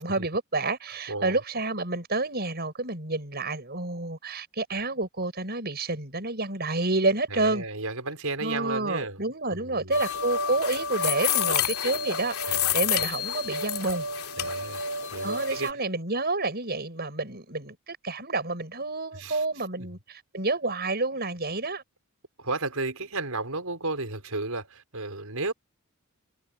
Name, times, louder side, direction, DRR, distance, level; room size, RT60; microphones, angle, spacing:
voice 1, 0.0-7.6 8.4-14.1 15.2-21.8, right 2 dB, 45° right, 7.4 m, -29 dB
voice 2, 1.1-1.4 7.3-9.2 9.5-10.0 12.5-12.8 14.4-15.8 19.1-19.4 19.8-20.0 22.4-25.5, right 3 dB, 85° right, 5.3 m, -33 dB
sound 1, 9.9-15.7, left 6 dB, 85° left, 2.8 m, -29 dB
head